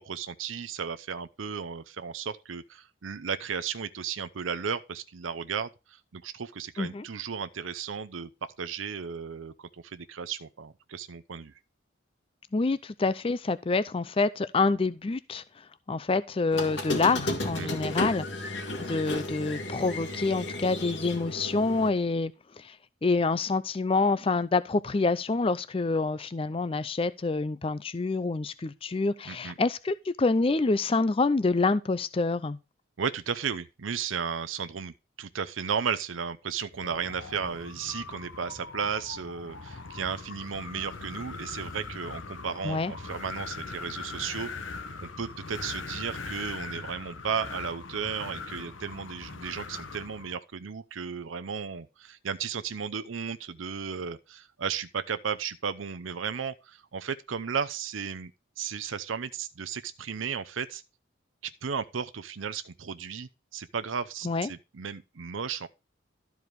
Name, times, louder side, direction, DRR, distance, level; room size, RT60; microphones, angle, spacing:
voice 1, 0.0-11.5 17.6-17.7 29.3-29.6 33.0-44.5 45.0-58.3 58.6-60.8 61.4-65.7, right 6 dB, 90° right, 0.6 m, -34 dB
voice 2, 12.5-15.4 15.9-18.6 18.9-22.3 22.6-22.7 23.0-32.6 42.6-42.9 64.2-64.5, left 3 dB, 30° left, 0.4 m, -27 dB
Squeak, 16.5-21.9, left 1 dB, 65° left, 2.1 m, -33 dB
Wind, 36.7-50.4, left 4 dB, 85° left, 1.1 m, -40 dB
12.5 x 4.7 x 5.2 m
head